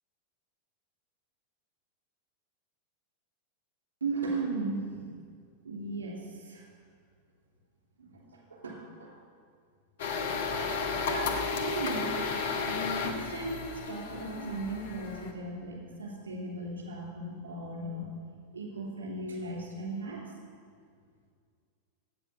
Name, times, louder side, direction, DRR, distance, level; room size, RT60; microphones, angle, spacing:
voice 1, 4.0-5.2 5.6-6.6 8.0-9.1 10.5-12.3 12.6-18.1 18.5-20.2, right 2 dB, 65° right, -3 dB, 2.9 m, -37 dB
sound 1, 10.0-15.3, left 5 dB, 60° left, 0.9 m, -33 dB
8.6 x 7.4 x 6.5 m, 2.1 s
figure-of-eight pair, 90°, 0 cm